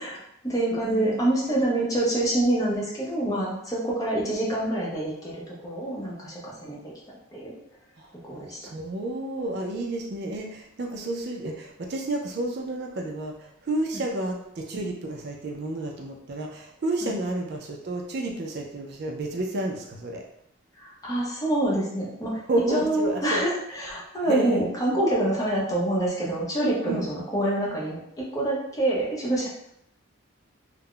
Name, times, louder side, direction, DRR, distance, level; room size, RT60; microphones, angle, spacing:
voice 1, 0.0-6.8 7.3-7.6 8.2-8.7 17.0-17.1 20.8-22.4 22.7-28.0 28.3-29.7, right 1 dB, 15° left, -5 dB, 0.7 m, -26 dB
voice 2, 0.8-1.2 8.0-8.1 8.6-20.2 22.5-23.4 24.3-24.7 26.8-27.1, right 2 dB, 50° right, 1 dB, 0.4 m, -31 dB
2.3 x 2.0 x 3.6 m, 0.73 s
head